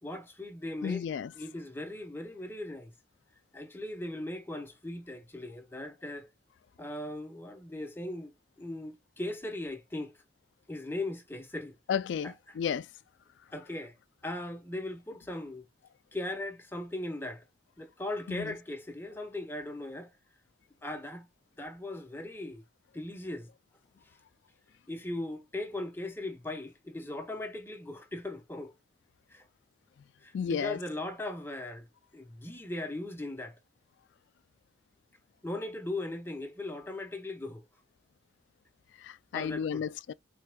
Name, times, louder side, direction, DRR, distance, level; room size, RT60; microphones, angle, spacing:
voice 1, 0.0-1.0 1.3-2.9 3.5-6.3 6.8-8.3 8.6-10.2 10.7-11.7 12.2-12.6 13.5-14.0 14.2-15.6 16.1-17.4 17.8-20.1 20.8-21.3 21.6-22.6 22.9-23.5 24.9-28.7 29.3-29.5 30.2-31.9 32.1-33.6 35.4-37.6 39.3-39.9, left 1 dB, 10° left, 1.0 m, -38 dB
voice 2, 0.8-1.3 11.9-12.9 18.3-18.5 30.3-30.8 39.0-40.1, left 7 dB, 90° left, 0.3 m, -33 dB
5.7 x 3.4 x 2.2 m
head